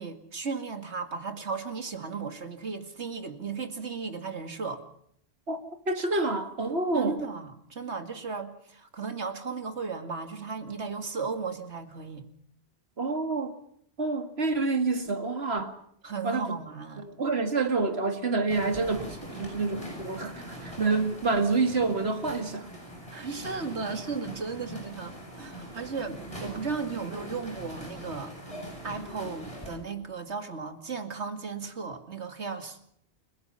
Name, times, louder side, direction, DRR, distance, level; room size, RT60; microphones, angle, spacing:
voice 1, 0.0-4.8 6.9-12.3 16.0-17.1 23.1-28.3 28.8-32.8, right 5 dB, 85° right, 2.5 m, -35 dB
voice 2, 5.5-7.1 13.0-13.5 14.0-15.7 16.2-16.6 17.0-22.7, right 3 dB, 70° right, 2.5 m, -28 dB
sound 1, 18.5-29.7, equal, 30° left, 7.9 m, -42 dB
29.5 x 17.0 x 5.7 m
omnidirectional pair, 1.1 m